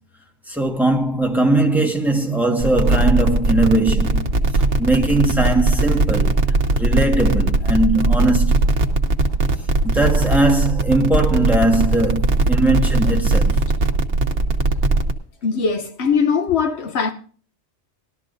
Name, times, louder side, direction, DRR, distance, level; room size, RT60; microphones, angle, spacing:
voice 1, 0.5-4.3 4.5-6.4 6.7-8.8 9.8-13.6, right 2 dB, ahead, 1.4 m, -19 dB
sound 1, 2.6-15.1, right 2 dB, 75° right, 1.3 m, -19 dB
voice 2, 15.4-17.1, left 5 dB, 70° left, 1.0 m, -20 dB
19.0 x 12.5 x 2.6 m
omnidirectional pair, 1.2 m